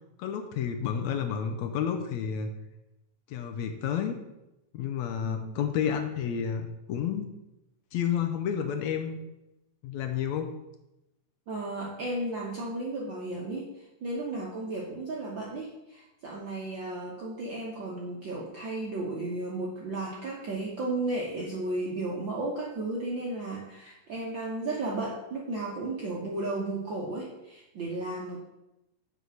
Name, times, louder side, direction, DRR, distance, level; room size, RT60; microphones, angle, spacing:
voice 1, 0.2-2.5 3.3-4.2 4.7-7.3 7.9-9.2 9.8-10.5, left 8 dB, 75° left, 5 dB, 1.8 m, -30 dB
voice 2, 5.2-5.6 11.5-28.4, right 2 dB, 65° right, -3 dB, 1.2 m, -34 dB
6.7 x 5.3 x 6.3 m, 0.93 s
omnidirectional pair, 3.5 m